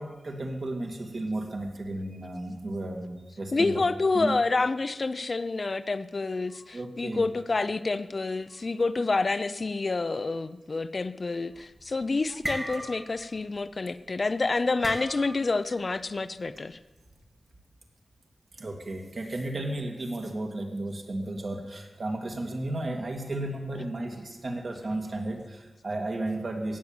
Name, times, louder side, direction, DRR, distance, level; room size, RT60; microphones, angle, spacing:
voice 1, 0.0-3.8 4.1-4.3 6.5-7.3 18.6-26.8, right 1 dB, 55° right, 2 dB, 2.4 m, -34 dB
voice 2, 3.5-16.8, left 3 dB, 45° left, 12 dB, 0.6 m, -28 dB
sound 1, 11.6-11.9 12.2-13.3 13.5-13.8 14.8-15.5, right 1 dB, 25° right, 2.3 m, -36 dB
17.0 x 7.4 x 8.8 m, 1.1 s
wide cardioid pair, 95°, 0 cm